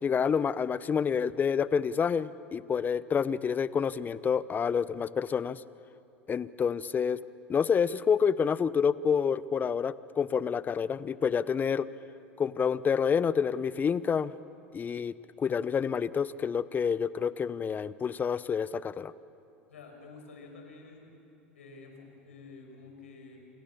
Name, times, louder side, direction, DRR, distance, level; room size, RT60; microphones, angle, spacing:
voice 1, 0.0-5.6 6.3-7.2 7.5-11.9 12.4-14.3 14.7-19.1, left 6 dB, 25° left, 17 dB, 0.8 m, -28 dB
voice 2, 19.7-21.1 21.5-23.4, left 4 dB, 80° left, 3 dB, 6.1 m, -49 dB
28.5 x 28.0 x 7.1 m, 2.7 s
hypercardioid pair, 85°, 7 cm